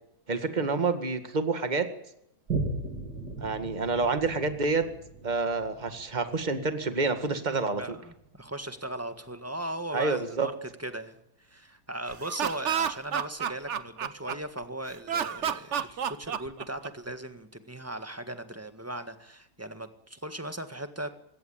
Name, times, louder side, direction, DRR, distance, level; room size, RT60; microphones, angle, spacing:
voice 1, 0.3-1.9 3.4-4.8 5.2-8.0 9.9-10.5, right 4 dB, 25° right, 8 dB, 2.0 m, -28 dB
Boom, 2.5-9.4 9.9-10.0, right 3 dB, 65° right, 3.4 m, -38 dB
voice 2, 7.8-21.1, right 1 dB, 10° right, 9 dB, 1.5 m, -38 dB
Laughter, 12.1-14.6 15.1-17.1, right 8 dB, 50° right, 1.1 m, -30 dB
20.5 x 17.0 x 8.8 m, 0.79 s
omnidirectional pair, 1.9 m